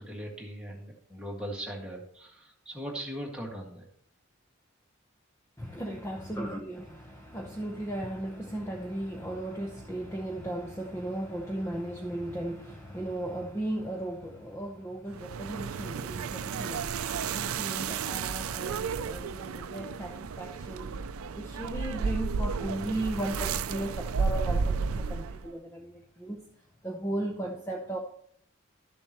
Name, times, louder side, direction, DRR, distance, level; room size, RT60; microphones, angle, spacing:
voice 1, 0.0-3.9, equal, 5° right, -3 dB, 1.9 m, -39 dB
voice 2, 5.6-16.9 17.2-21.0 21.3-26.4 26.8-28.0, right 1 dB, 15° left, 1 dB, 0.8 m, -36 dB
sound 1, 15.1-25.5, right 5 dB, 90° right, 0.4 m, -32 dB
12.5 x 7.0 x 3.0 m, 0.65 s
head